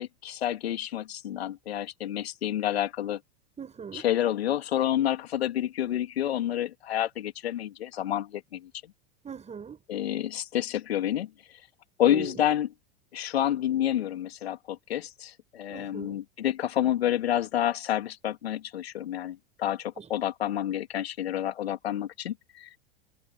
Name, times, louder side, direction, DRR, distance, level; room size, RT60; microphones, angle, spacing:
voice 1, 0.0-3.2 3.9-8.7 9.9-11.3 12.0-12.7 13.1-22.7, left 11 dB, 80° left, 3.1 m, -29 dB
voice 2, 3.6-4.0 9.2-9.8 12.0-12.5 15.7-16.2 20.0-20.1, right 6 dB, 20° right, 5.4 m, -40 dB
hypercardioid pair, 95°, 31 cm